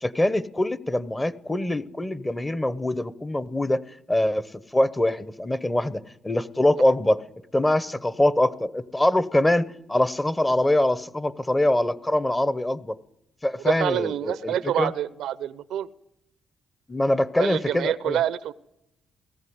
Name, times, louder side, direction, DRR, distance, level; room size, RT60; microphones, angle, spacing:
voice 1, 0.0-3.8 4.1-4.5 4.7-7.2 7.5-13.0 13.4-14.9 16.9-18.2, left 1 dB, 15° left, 15 dB, 1.0 m, -23 dB
voice 2, 13.6-15.9 17.4-18.5, right 11 dB, 80° right, 17 dB, 0.7 m, -27 dB
19.0 x 14.5 x 9.5 m, 0.85 s
cardioid pair, 90°, 0 cm